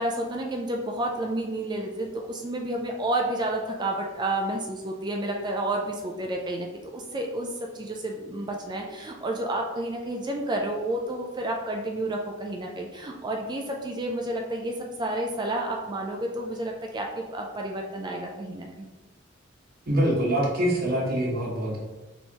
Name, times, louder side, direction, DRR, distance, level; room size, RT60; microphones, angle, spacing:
voice 1, 0.0-14.7 15.0-18.9, right 1 dB, 20° right, 1 dB, 0.4 m, -30 dB
voice 2, 19.9-21.8, right 1 dB, 50° right, -3 dB, 1.0 m, -24 dB
4.3 x 3.4 x 2.9 m, 1.2 s
head